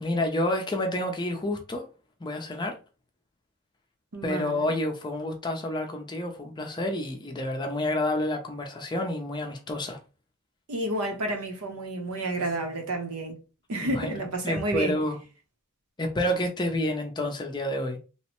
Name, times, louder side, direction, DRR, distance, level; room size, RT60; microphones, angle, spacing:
voice 1, 0.0-1.9 2.2-2.8 4.2-10.0 13.8-15.2 16.0-18.0, left 1 dB, 20° left, 0.4 m, -29 dB
voice 2, 4.1-4.8 10.7-13.4 13.7-15.0, right 1 dB, 80° right, 0.8 m, -30 dB
3.0 x 2.1 x 2.9 m
head